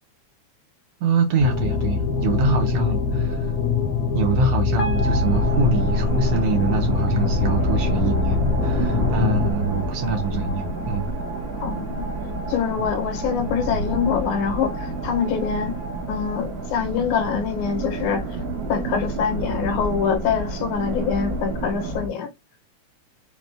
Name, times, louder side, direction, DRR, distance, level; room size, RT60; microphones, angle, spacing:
voice 1, 1.0-3.5 4.1-11.1 12.8-12.9, right 4 dB, 70° right, 1.6 m, -24 dB
sound 1, 1.4-9.5, left 5 dB, 30° left, 1.4 m, -23 dB
sound 2, 4.8-17.1, right 1 dB, 55° left, 1.9 m, -37 dB
sound 3, 4.9-22.1, right 2 dB, 45° right, 1.2 m, -29 dB
voice 2, 11.6-12.1 12.5-15.8 16.1-18.3 18.7-22.3, left 7 dB, 85° left, 2.6 m, -25 dB
5.2 x 2.8 x 3.4 m
omnidirectional pair, 3.3 m